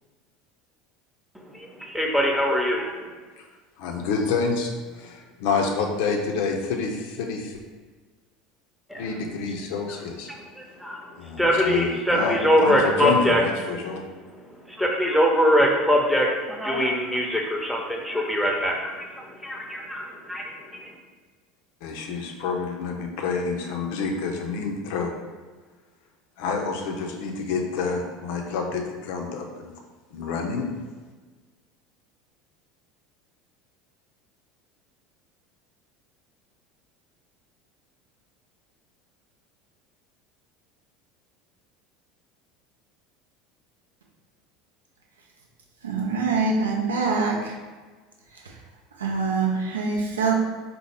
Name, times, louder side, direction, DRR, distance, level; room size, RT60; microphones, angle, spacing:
voice 1, 1.3-3.2 8.9-9.2 10.3-13.5 14.2-21.0, equal, ahead, -1 dB, 0.7 m, -23 dB
voice 2, 3.8-7.6 9.0-10.3 11.2-14.1 21.8-25.1 26.4-29.7 30.1-30.8, left 4 dB, 60° left, 2 dB, 0.4 m, -28 dB
voice 3, 45.8-47.4 49.0-50.3, right 4 dB, 75° right, -1 dB, 0.5 m, -24 dB
4.2 x 2.0 x 3.3 m, 1.4 s
figure-of-eight pair, 70°, 0 cm